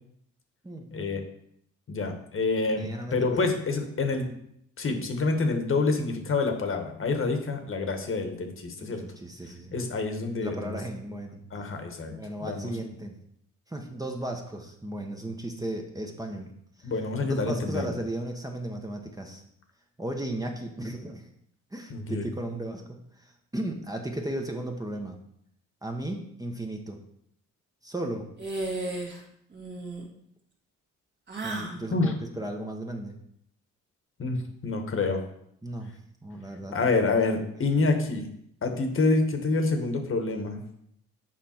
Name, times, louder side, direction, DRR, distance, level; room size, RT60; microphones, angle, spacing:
voice 1, 0.9-1.2 1.9-4.3 4.8-9.0 9.7-10.8 11.5-12.1 12.4-12.7 16.8-18.0 21.9-22.3 31.9-32.1 34.2-35.2 36.7-38.3 38.6-40.6, left 3 dB, 45° left, 5 dB, 1.4 m, -27 dB
voice 2, 2.7-3.5 8.8-9.8 10.4-11.7 12.1-13.2 13.7-16.5 16.8-16.9 17.3-19.4 20.0-21.3 21.7-25.2 25.8-27.0 27.8-28.3 31.4-33.2 35.6-35.9 36.2-36.8, right 1 dB, 10° right, 2 dB, 1.1 m, -35 dB
sound 1, 28.4-29.2 29.5-30.1 31.3-31.8, right 2 dB, 35° right, 1.8 m, -34 dB
7.6 x 5.1 x 4.4 m, 0.72 s
cardioid pair, 90°, 30 cm